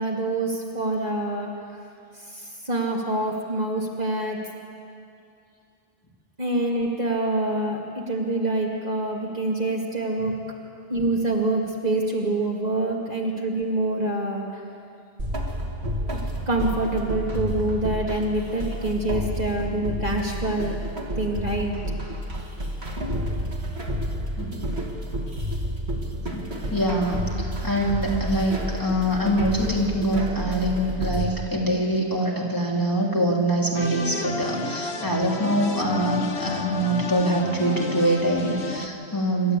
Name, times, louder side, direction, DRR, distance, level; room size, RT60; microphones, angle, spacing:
voice 1, 0.0-1.5 2.1-4.4 6.4-10.3 10.9-14.6 16.1-16.2 16.5-20.8 21.2-21.8, right 2 dB, 40° right, -2 dB, 2.4 m, -26 dB
sound 1, 15.2-31.2, equal, 80° right, 2.4 m, -30 dB
voice 2, 24.4-24.7 26.3-39.6, right 1 dB, 20° left, -3 dB, 3.0 m, -24 dB
sound 2, 33.7-38.9, left 4 dB, 80° left, 1.5 m, -31 dB
27.5 x 12.5 x 8.3 m, 2.6 s
omnidirectional pair, 1.1 m